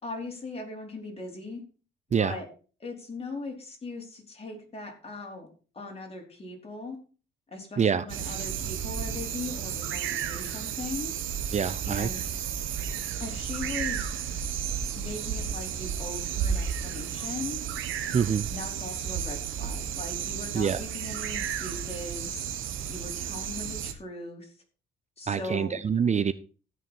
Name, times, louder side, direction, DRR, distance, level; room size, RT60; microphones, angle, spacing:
voice 1, 0.0-1.6 2.2-2.5 2.8-5.5 5.7-7.0 7.5-11.1 11.8-12.4 13.2-14.0 15.0-17.6 18.5-22.4 22.9-24.5 25.2-25.8, left 3 dB, 30° left, 0 dB, 4.5 m, -39 dB
sound 1, 8.1-23.9, right 8 dB, 85° right, 1.3 m, -33 dB
voice 2, 11.5-12.1 18.1-18.5 20.5-20.8 25.3-26.3, right 7 dB, 35° right, 14 dB, 0.6 m, -25 dB
16.0 x 6.3 x 4.5 m, 0.37 s
cardioid pair, 90°, 20 cm